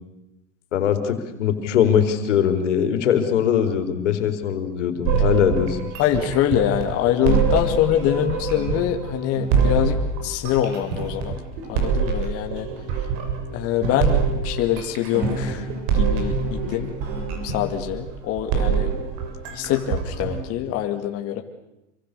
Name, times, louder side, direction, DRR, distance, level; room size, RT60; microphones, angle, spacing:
voice 1, 0.7-5.8, left 8 dB, 85° left, 8 dB, 4.1 m, -21 dB
sound 1, 5.0-20.4, right 5 dB, 55° right, 6.9 m, -25 dB
voice 2, 6.0-11.4 11.7-12.7 13.5-15.7 15.9-17.0 17.4-18.9 19.5-21.4, left 11 dB, 40° left, 4 dB, 2.4 m, -24 dB
27.5 x 24.0 x 6.9 m, 0.93 s
supercardioid pair, 125°, 35 cm